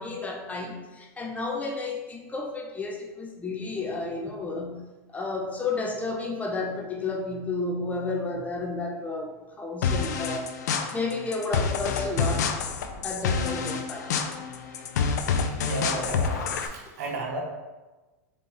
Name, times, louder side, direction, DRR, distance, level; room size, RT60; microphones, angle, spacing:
voice 1, 0.0-4.8 5.1-10.5 10.9-12.6 13.0-14.3, left 3 dB, 15° left, 1 dB, 0.6 m, -32 dB
sound 1, 9.8-16.7, left 6 dB, 80° left, 0.4 m, -28 dB
voice 2, 15.6-17.4, right 4 dB, 70° right, 0 dB, 1.1 m, -34 dB
4.2 x 3.4 x 3.0 m, 1.2 s
hypercardioid pair, 115°, 9 cm